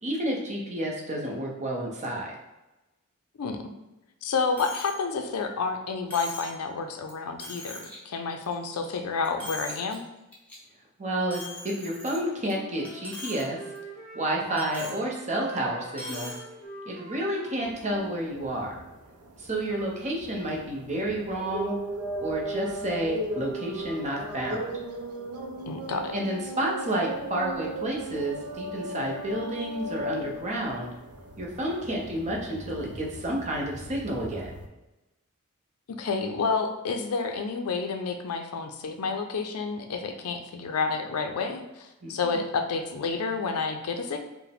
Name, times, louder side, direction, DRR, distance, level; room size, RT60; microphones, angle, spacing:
voice 1, 0.0-2.4 11.0-13.6 14.1-16.3 16.9-18.8 19.4-21.8 22.2-24.6 26.1-30.9 31.4-34.6 42.0-42.4, right 1 dB, 30° right, -1 dB, 0.7 m, -30 dB
voice 2, 4.2-10.0 25.7-26.1 36.0-44.2, left 4 dB, 75° left, 5 dB, 0.4 m, -30 dB
Coin (dropping), 4.6-5.0 5.3-5.4 6.1-6.6 7.1-7.2 7.4-8.0 8.4-8.9 9.2-9.9 10.3-10.5 11.3-12.5 12.8-13.4 13.7-13.8 14.6-15.0 15.9-16.4, left 1 dB, 5° left, 0.8 m, -40 dB
Wind instrument woodwind instrument, 12.3-15.0 15.3-18.9, right 1 dB, 15° right, 1.1 m, -44 dB
sound 1, 17.6-34.7, right 1 dB, 90° right, 0.5 m, -37 dB
4.6 x 2.1 x 3.4 m, 0.99 s
head